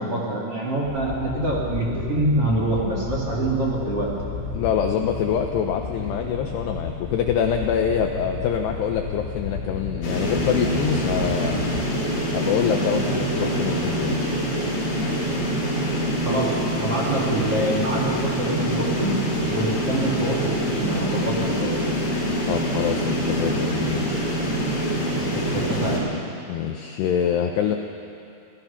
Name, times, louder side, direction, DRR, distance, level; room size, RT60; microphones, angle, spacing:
voice 1, 0.0-4.1 16.2-19.1 19.5-21.7 25.3-26.1, right 1 dB, 35° right, -4 dB, 2.7 m, -25 dB
sound 1, 0.8-11.9, left 5 dB, 65° left, 5.7 m, -33 dB
voice 2, 4.5-11.6 12.3-14.2 22.5-24.3 26.5-27.8, left 8 dB, 90° left, 4 dB, 2.3 m, -25 dB
sound 2, 10.0-26.0, equal, 45° left, 5.2 m, -25 dB
28.0 x 16.5 x 5.9 m, 2.6 s
omnidirectional pair, 6.0 m